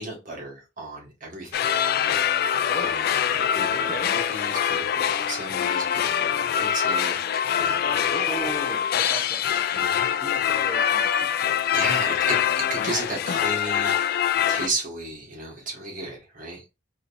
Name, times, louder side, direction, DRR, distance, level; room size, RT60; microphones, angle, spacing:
voice 1, 0.0-1.6 1.9-8.6 9.7-10.1 11.7-16.7, right 2 dB, 50° right, -1 dB, 1.6 m, -35 dB
sound 1, 1.5-14.7, left 9 dB, 55° left, 0.3 m, -24 dB
voice 2, 3.7-4.1 8.1-9.4 10.2-11.6, right 1 dB, 10° left, -2 dB, 1.0 m, -36 dB
3.8 x 2.9 x 2.6 m, 0.28 s
head